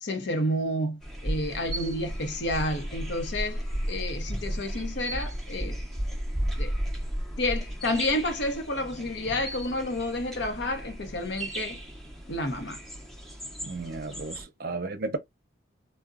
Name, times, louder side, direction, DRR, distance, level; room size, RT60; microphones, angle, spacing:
voice 1, 0.0-5.8 6.6-6.7 7.4-11.8 12.3-12.8 14.7-14.8, left 1 dB, 70° left, 0.8 m, -30 dB
sound 1, 1.0-14.4, equal, ahead, 0.7 m, -34 dB
voice 2, 13.6-15.2, right 3 dB, 55° right, 0.6 m, -34 dB
3.8 x 2.2 x 2.3 m
head